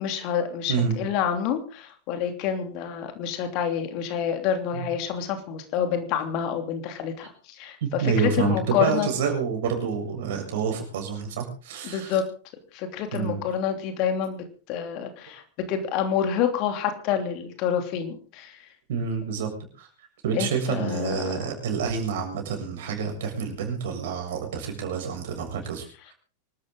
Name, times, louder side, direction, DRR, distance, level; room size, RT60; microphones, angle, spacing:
voice 1, 0.0-0.7 1.0-7.3 7.6-9.1 11.8-12.3 12.7-15.4 15.7-18.6 20.3-21.4, left 8 dB, 40° left, 6 dB, 3.1 m, -28 dB
voice 2, 7.8-12.2 13.1-13.4 18.9-19.5 19.8-19.9 20.2-25.8, right 6 dB, 55° right, 3 dB, 7.3 m, -28 dB
25.5 x 13.5 x 3.9 m, 0.38 s
figure-of-eight pair, 90°, 0 cm